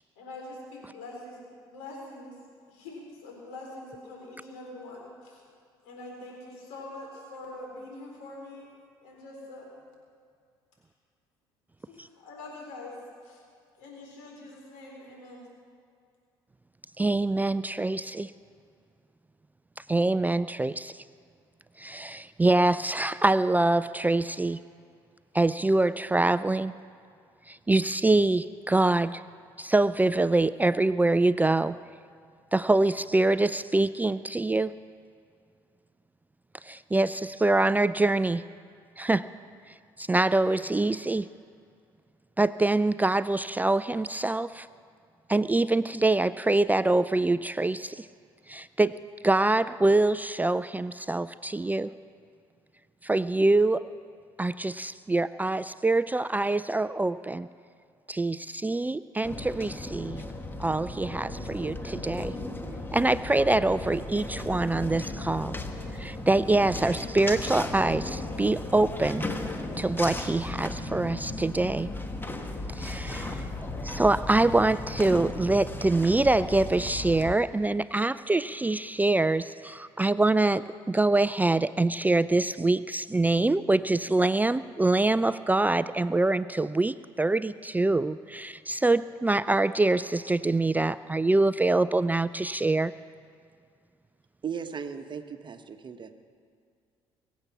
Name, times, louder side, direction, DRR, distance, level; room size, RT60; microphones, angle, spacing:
voice 1, 0.2-2.3 2.7-5.4 5.8-8.7 9.0-9.8 11.9-12.9 13.2-13.4 13.8-15.5, left 2 dB, 80° left, -1 dB, 4.1 m, -44 dB
voice 2, 17.0-18.3 19.9-20.9 21.8-24.6 25.3-26.7 27.5-29.2 29.6-31.8 32.5-34.7 36.6-38.4 39.0-39.3 40.0-41.3 42.4-44.7 45.3-48.1 48.5-49.0 49.2-51.9 53.0-53.9 54.4-57.5 58.1-60.2 60.6-62.3 62.9-65.6 66.0-69.2 69.8-71.9 72.7-73.4 73.8-92.9, right 2 dB, 15° right, 15 dB, 0.4 m, -25 dB
sound 1, 59.2-77.4, left 2 dB, 15° left, 1.4 m, -36 dB
voice 3, 94.4-96.1, right 7 dB, 40° right, 8 dB, 1.1 m, -37 dB
23.0 x 8.3 x 5.8 m, 2.3 s
hypercardioid pair, 55°, 12 cm